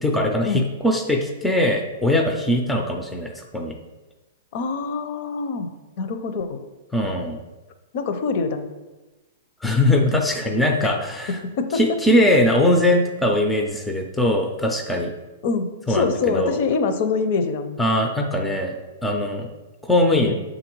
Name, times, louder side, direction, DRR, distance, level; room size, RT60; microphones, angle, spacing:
voice 1, 0.0-3.7 6.9-7.4 9.6-11.4 11.7-15.1 15.9-16.6 17.8-18.8 19.0-19.5 19.9-20.4, left 1 dB, 5° left, 2 dB, 0.5 m, -21 dB
voice 2, 4.5-5.7 6.0-6.6 7.9-8.7 10.8-10.9 11.6-11.8 15.4-17.8, left 4 dB, 45° left, 8 dB, 0.6 m, -24 dB
6.8 x 3.9 x 4.5 m, 1.1 s
hypercardioid pair, 165°, 0 cm